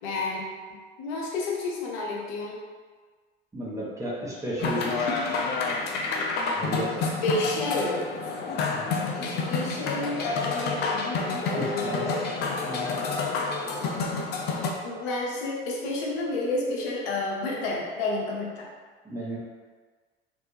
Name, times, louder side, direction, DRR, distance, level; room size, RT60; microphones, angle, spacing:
voice 1, 0.0-2.6 7.0-8.1 9.1-12.3 14.8-18.7, left 2 dB, 60° left, -2 dB, 0.8 m, -30 dB
voice 2, 3.5-5.1 6.6-7.1 8.7-9.0 11.6-12.1 12.6-12.9 19.0-19.4, equal, 10° right, -7 dB, 0.9 m, -33 dB
sound 1, 4.6-14.7, left 4 dB, 35° left, 0.5 m, -29 dB
3.3 x 2.6 x 2.9 m, 1.5 s
figure-of-eight pair, 65°, 30 cm